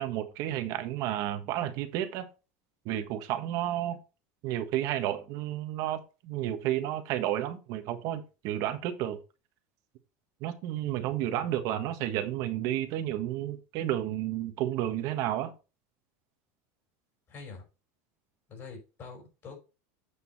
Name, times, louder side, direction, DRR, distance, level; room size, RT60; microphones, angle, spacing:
voice 1, 0.0-2.2 2.8-4.0 4.4-9.2 10.4-15.5, right 12 dB, 55° right, 1.5 m, -31 dB
voice 2, 11.2-11.7 17.3-17.6 18.5-19.6, left 4 dB, 35° left, 4.9 m, -46 dB
8.5 x 5.4 x 4.2 m
supercardioid pair, 140°, 7 cm